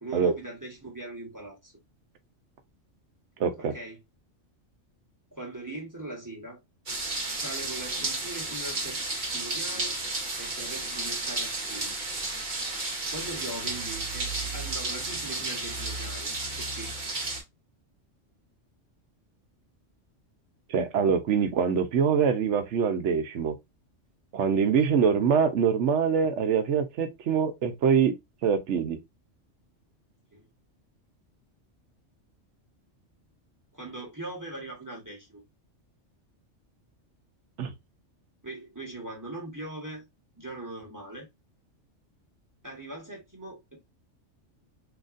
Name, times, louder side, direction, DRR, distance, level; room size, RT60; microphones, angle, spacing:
voice 1, 0.0-1.7 3.6-4.0 5.3-6.6 7.4-9.0 9.3-9.9 10.4-11.9 13.1-16.3 16.6-16.9 30.3-30.5 33.7-35.4 38.4-40.0 40.4-41.3 42.6-43.8, right 1 dB, 15° right, 1.3 m, -40 dB
voice 2, 3.4-3.7 20.7-23.5 24.3-28.1 28.4-29.0 37.6-37.7, right 6 dB, 70° right, 1.0 m, -24 dB
sound 1, 6.9-17.4, right 2 dB, 40° right, 1.2 m, -32 dB
3.9 x 2.9 x 2.5 m
omnidirectional pair, 1.3 m